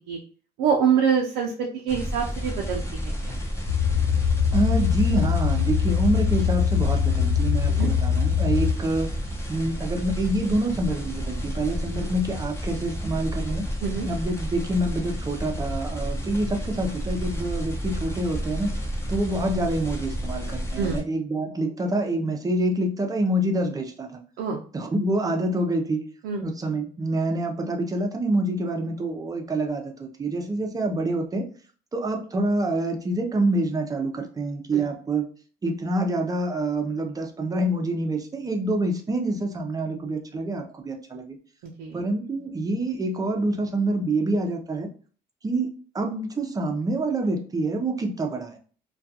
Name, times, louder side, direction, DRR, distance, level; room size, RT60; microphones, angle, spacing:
voice 1, 0.6-3.3 7.7-7.9 13.8-14.1 20.8-21.0 24.4-24.6 26.2-26.4 34.7-34.8 41.8-42.0, right 7 dB, 90° right, 0 dB, 0.4 m, -25 dB
sound 1, 1.9-21.0, equal, 15° left, 0.7 m, -31 dB
sound 2, 3.7-8.7, left 8 dB, 55° left, 0.8 m, -22 dB
voice 2, 4.5-9.1 9.5-13.7 14.0-18.8 19.1-24.2 24.7-26.0 26.4-31.5 31.9-35.3 35.6-41.4 41.9-44.9 45.4-48.6, right 1 dB, 20° right, 3 dB, 0.5 m, -26 dB
2.3 x 2.3 x 2.7 m, 0.41 s
cardioid pair, 110°, 17 cm